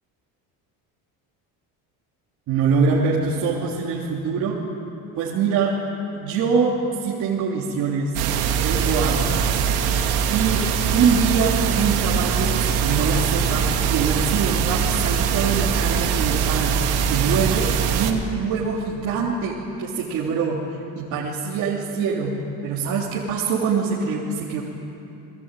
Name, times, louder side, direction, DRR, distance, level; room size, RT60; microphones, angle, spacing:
voice 1, 2.5-4.6 5.2-5.7 6.1-8.1 8.5-9.6 9.8-9.9 10.3-10.7 10.9-20.6 20.9-22.3 22.6-24.6, right 5 dB, 50° right, -5 dB, 3.2 m, -24 dB
sound 1, 8.1-18.1, right 7 dB, 85° right, 2.7 m, -22 dB
29.5 x 21.5 x 9.1 m, 2.9 s
cardioid pair, 175°, 37 cm